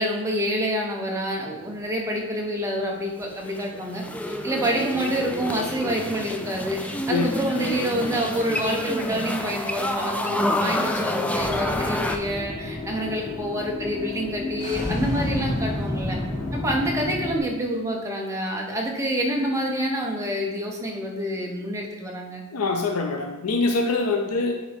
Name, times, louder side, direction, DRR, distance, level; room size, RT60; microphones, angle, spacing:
voice 1, 0.0-16.2 16.5-22.4, equal, 15° right, -1 dB, 1.0 m, -27 dB
sound 1, 3.2-12.2, left 1 dB, 5° left, 0.3 m, -28 dB
voice 2, 7.1-8.2 8.5-8.6 22.5-24.6, left 3 dB, 90° left, 4 dB, 0.6 m, -25 dB
sound 2, 11.4-17.4, left 2 dB, 35° left, 1.8 m, -30 dB
9.4 x 3.7 x 3.5 m, 1.0 s
head